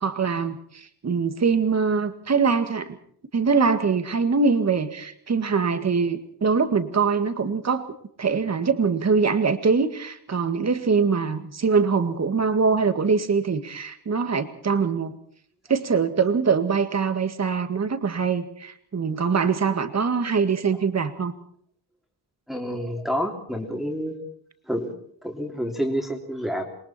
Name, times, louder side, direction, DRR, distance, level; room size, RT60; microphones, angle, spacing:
voice 1, 0.0-3.0 3.3-7.9 8.2-15.1 15.7-21.3, right 5 dB, 40° right, 9 dB, 2.0 m, -23 dB
voice 2, 22.5-24.2 24.7-24.9 25.2-26.6, equal, ahead, 0 dB, 3.2 m, -28 dB
28.0 x 22.5 x 4.4 m, 0.63 s
wide cardioid pair, 175°, 41 cm